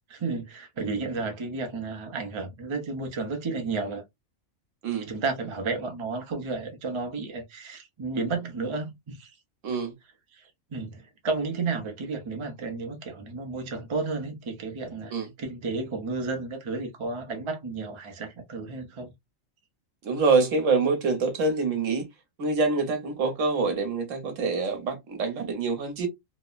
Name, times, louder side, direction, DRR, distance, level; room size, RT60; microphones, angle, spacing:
voice 1, 0.1-4.0 4.9-9.4 10.3-19.1, right 3 dB, 30° right, 0.6 m, -32 dB
voice 2, 20.0-22.0 22.4-26.1, right 4 dB, 75° right, 1.2 m, -25 dB
2.9 x 2.0 x 2.3 m
omnidirectional pair, 1.3 m